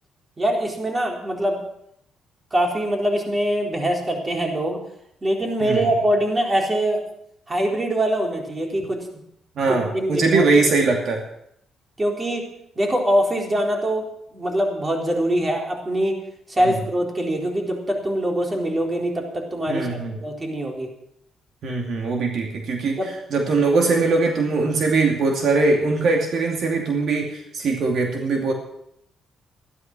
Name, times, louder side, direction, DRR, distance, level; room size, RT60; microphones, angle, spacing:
voice 1, 0.4-1.6 2.5-4.8 5.2-7.0 7.5-9.1 9.7-10.4 12.0-12.5 12.8-16.2 16.5-20.9 23.0-23.1, right 1 dB, 25° right, 1 dB, 3.9 m, -23 dB
voice 2, 9.6-11.2 16.7-16.8 19.7-20.1 21.6-23.0 23.3-28.5, right 3 dB, 65° right, 1 dB, 2.6 m, -21 dB
14.0 x 12.0 x 6.1 m, 0.74 s
cardioid pair, 90°, 0 cm